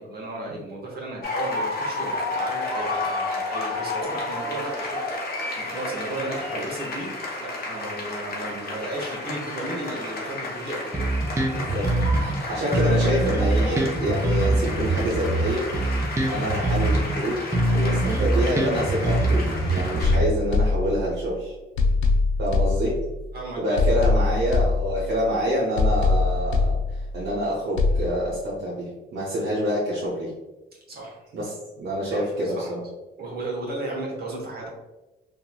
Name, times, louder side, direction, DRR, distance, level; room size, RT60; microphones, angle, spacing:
voice 1, 0.0-11.1 23.3-24.1 30.9-31.3 32.1-32.7 33.2-34.7, right 2 dB, 50° right, -2 dB, 1.1 m, -34 dB
sound 1, 1.2-20.2, left 2 dB, 50° left, 0.9 m, -32 dB
Bass guitar, 10.9-12.4 12.7-17.2 17.5-20.5, right 1 dB, 15° right, 0.5 m, -23 dB
voice 2, 11.6-11.9 12.2-15.7 16.0-21.5 22.4-23.0 23.6-26.8 27.1-30.3 31.3-32.8, equal, 80° right, -7 dB, 1.0 m, -27 dB
sound 2, 20.0-21.3 21.8-23.3 23.8-25.3 25.8-27.3 27.8-28.0, left 3 dB, 75° left, 0.5 m, -23 dB
2.9 x 2.6 x 2.2 m, 1.1 s
cardioid pair, 90°, 20 cm